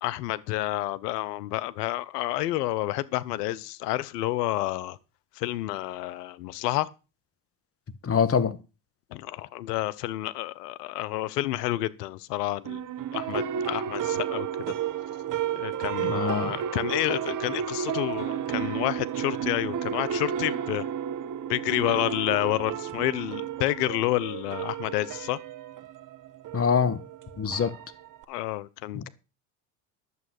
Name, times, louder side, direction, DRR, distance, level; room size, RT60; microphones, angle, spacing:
voice 1, 0.0-5.0 5.4-6.9 9.1-12.8 13.1-14.5 15.5-20.8 21.5-25.4 27.5-27.7 28.3-29.1, left 16 dB, 80° left, 0.9 m, -29 dB
voice 2, 8.0-8.6 16.0-16.5 26.5-27.0 27.4-27.7 28.9-29.1, left 6 dB, 30° left, 1.6 m, -24 dB
sound 1, 12.6-28.2, right 9 dB, 40° right, 1.3 m, -32 dB
11.0 x 7.5 x 6.4 m
hypercardioid pair, 75°, 47 cm